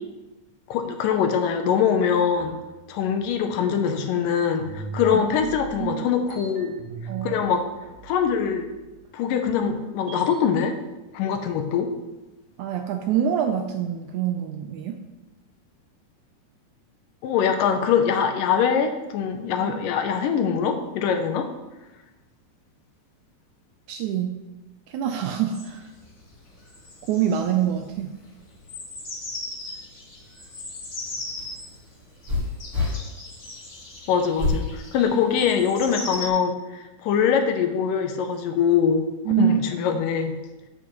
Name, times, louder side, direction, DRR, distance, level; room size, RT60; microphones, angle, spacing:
voice 1, 0.7-2.6 2.9-6.8 7.2-7.7 8.0-8.7 9.1-10.8 11.1-11.9 17.2-21.5 34.1-39.1 39.4-40.3, left 7 dB, 80° left, 6 dB, 2.4 m, -23 dB
sound 1, 2.3-4.2 4.6-10.4, right 5 dB, 65° right, 2.0 m, -41 dB
voice 2, 5.1-6.1 7.1-7.4 12.6-15.0 19.5-19.8 23.9-24.4 24.9-25.9 27.1-28.2 39.3-39.7, right 9 dB, 80° right, 5 dB, 1.8 m, -26 dB
sound 2, 25.5-36.3, left 2 dB, 40° left, 2.0 m, -39 dB
sound 3, 31.0-33.0 34.4-34.7 35.3-35.9, left 3 dB, 30° right, 1.5 m, -27 dB
8.7 x 8.1 x 3.2 m, 1.1 s
omnidirectional pair, 3.9 m